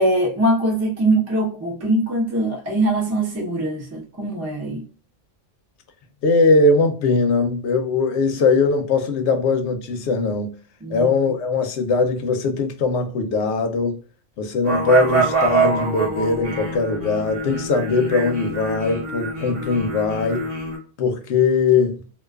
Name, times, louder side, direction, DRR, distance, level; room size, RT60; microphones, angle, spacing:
voice 1, 0.0-4.8 10.8-11.1, right 1 dB, 20° right, 0.5 m, -22 dB
voice 2, 6.2-10.5 10.9-14.0 14.4-20.5 21.0-22.0, left 4 dB, 70° left, 0.8 m, -20 dB
sound 1, 14.6-20.8, right 4 dB, 75° right, 1.3 m, -24 dB
2.4 x 2.3 x 2.2 m
omnidirectional pair, 1.3 m